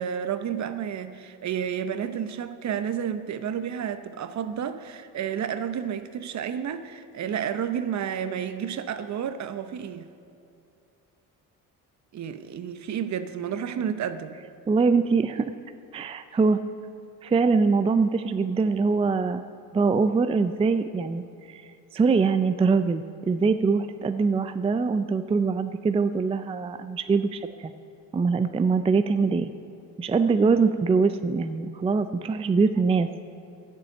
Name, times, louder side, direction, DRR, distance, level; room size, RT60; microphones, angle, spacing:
voice 1, 0.0-10.1 12.1-14.4, right 8 dB, 50° right, 10 dB, 0.8 m, -31 dB
voice 2, 14.7-15.5 15.9-16.6 17.2-19.4 19.7-21.6 21.9-27.7 28.1-29.5 30.0-33.1, right 4 dB, 15° right, 10 dB, 0.3 m, -23 dB
11.0 x 7.2 x 8.6 m, 2.7 s
cardioid pair, 100°, 35 cm